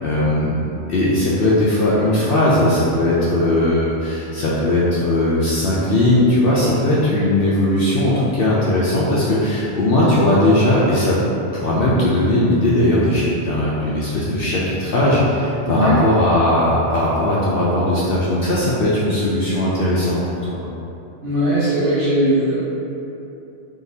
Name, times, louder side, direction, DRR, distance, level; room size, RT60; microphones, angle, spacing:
voice 1, 0.0-0.6 0.9-11.2 11.5-20.2 20.5-20.6, left 1 dB, 60° left, -7 dB, 0.7 m, -18 dB
voice 2, 15.6-16.0 21.2-22.5, equal, 80° right, -13 dB, 1.4 m, -18 dB
3.8 x 3.6 x 2.7 m, 2.9 s
omnidirectional pair, 1.2 m